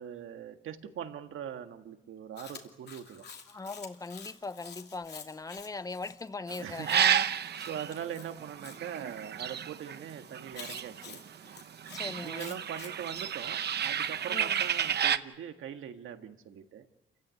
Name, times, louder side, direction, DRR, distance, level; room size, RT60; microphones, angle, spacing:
voice 1, 0.0-3.2 6.6-7.2 7.7-11.2 12.1-16.9, right 9 dB, 75° right, 1.8 m, -42 dB
Chewing mastication, 2.4-8.8 10.5-13.3, left 6 dB, 55° left, 2.9 m, -49 dB
voice 2, 3.5-7.3 11.9-12.6 14.3-14.6, left 3 dB, 15° left, 0.8 m, -40 dB
sound 1, 6.5-11.3 11.5-15.2, right 9 dB, 55° right, 0.9 m, -31 dB
29.0 x 16.0 x 9.6 m
cardioid pair, 135°, 21 cm